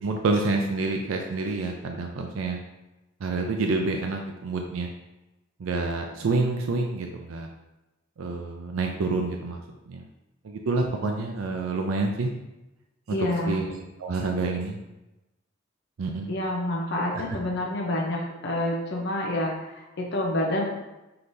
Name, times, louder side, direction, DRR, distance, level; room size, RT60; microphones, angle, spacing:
voice 1, 0.0-2.6 3.2-4.9 5.6-7.5 8.2-9.6 9.9-10.0 10.4-12.3 13.1-13.2 13.5-13.7 14.0-14.8 16.0-16.3 17.1-17.2, right 3 dB, 85° right, 2 dB, 0.4 m, -28 dB
voice 2, 13.1-13.6 16.3-20.6, left 1 dB, 55° left, -2 dB, 0.7 m, -28 dB
5.8 x 3.3 x 2.6 m, 1.0 s
head